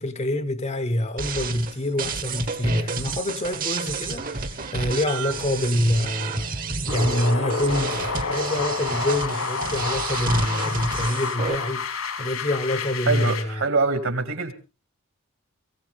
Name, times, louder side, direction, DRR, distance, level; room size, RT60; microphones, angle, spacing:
voice 1, 0.0-6.5 6.9-13.6, left 1 dB, 30° left, 0.9 m, -26 dB
sound 1, 1.2-11.5, right 4 dB, 40° right, 1.3 m, -31 dB
sound 2, 6.9-13.4, left 4 dB, 80° left, 3.1 m, -29 dB
voice 2, 13.1-14.5, right 3 dB, 65° right, 2.5 m, -24 dB
22.5 x 16.0 x 3.5 m
head